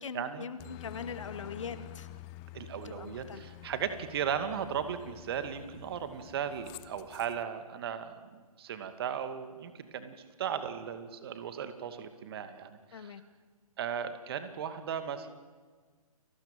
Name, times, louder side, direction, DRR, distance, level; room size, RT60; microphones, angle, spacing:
voice 1, 0.0-2.1 2.8-3.4 12.9-13.2, left 6 dB, 55° left, 11 dB, 2.3 m, -41 dB
Aircraft, 0.6-7.4, left 16 dB, 20° left, 0.7 m, -49 dB
voice 2, 2.5-13.1 13.8-15.3, right 8 dB, 40° right, 10 dB, 2.5 m, -36 dB
30.0 x 20.0 x 9.3 m, 1.5 s
figure-of-eight pair, 135°, 19 cm